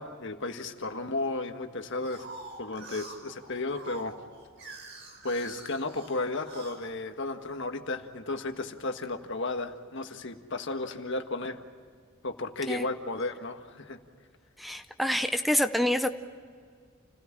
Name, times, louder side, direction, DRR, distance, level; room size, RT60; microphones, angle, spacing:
voice 1, 0.0-2.3 2.6-4.1 5.2-11.6 12.2-14.0, left 2 dB, 60° left, 6 dB, 1.6 m, -34 dB
sound 1, 1.9-7.7 8.2-8.9, right 3 dB, 60° right, 5.1 m, -47 dB
voice 2, 14.6-16.1, left 1 dB, ahead, 9 dB, 0.6 m, -27 dB
29.0 x 17.0 x 7.4 m, 2.1 s
head